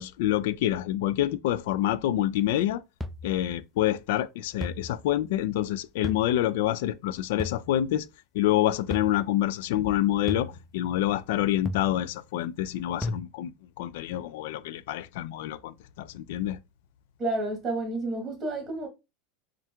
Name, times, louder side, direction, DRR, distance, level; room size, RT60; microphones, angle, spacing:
voice 1, 0.0-2.8 3.2-8.1 8.3-16.6, left 13 dB, 75° left, 0.4 m, -27 dB
sound 1, 3.0-3.4 4.6-5.0 6.0-6.4 7.4-7.8 8.9-9.3 10.3-10.7 11.7-12.1 13.0-13.2, left 2 dB, ahead, 0.4 m, -35 dB
voice 2, 17.2-18.9, right 2 dB, 25° right, 1.5 m, -30 dB
4.4 x 2.4 x 3.5 m
supercardioid pair, 140°, 0 cm